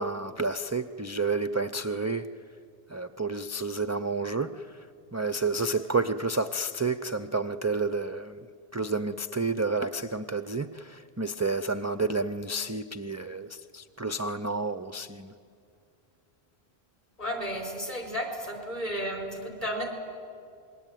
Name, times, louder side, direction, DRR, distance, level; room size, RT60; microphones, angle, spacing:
voice 1, 0.0-2.3 2.9-4.7 5.1-8.4 8.7-15.3, right 3 dB, 25° right, 11 dB, 0.4 m, -30 dB
voice 2, 17.2-19.9, equal, 35° left, 2 dB, 4.7 m, -33 dB
27.0 x 21.5 x 9.2 m, 2.4 s
omnidirectional pair, 1.1 m